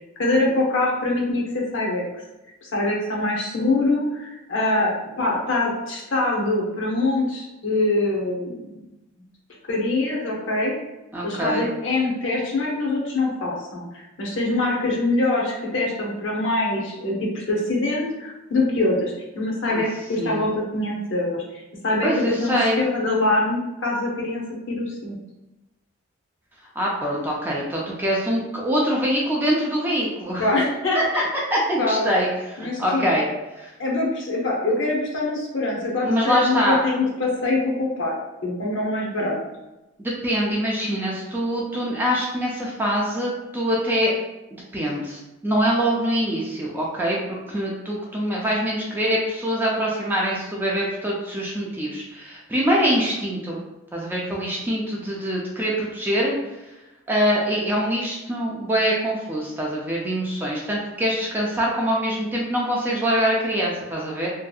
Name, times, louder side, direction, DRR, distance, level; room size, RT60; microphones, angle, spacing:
voice 1, 0.2-2.0 2.6-8.9 9.7-10.7 11.2-25.2 30.4-31.0 31.8-32.1 32.6-33.3 33.8-38.2 38.4-39.4, left 2 dB, 60° left, -2 dB, 0.7 m, -24 dB
voice 2, 11.1-11.7 19.7-19.8 20.2-20.4 22.0-22.8 26.8-30.5 30.9-31.2 31.5-33.3 33.6-33.7 36.0-36.8 40.2-44.1 44.7-47.2 47.5-53.6 53.9-56.3 57.1-64.3, equal, 10° right, -4 dB, 0.4 m, -24 dB
2.6 x 2.4 x 2.3 m, 1.0 s
head